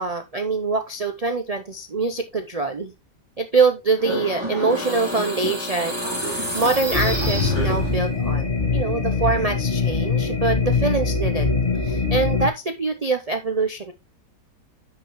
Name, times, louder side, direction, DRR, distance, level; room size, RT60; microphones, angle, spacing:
voice 1, 0.0-2.9 3.4-8.5 8.7-11.5 11.8-13.9, right 3 dB, 80° right, 7 dB, 0.3 m, -24 dB
sound 1, 4.0-8.2, equal, 15° right, 3.0 m, -27 dB
sound 2, 6.9-12.5, left 4 dB, 30° left, 1.8 m, -23 dB
9.9 x 6.0 x 3.0 m, 0.23 s
omnidirectional pair, 1.8 m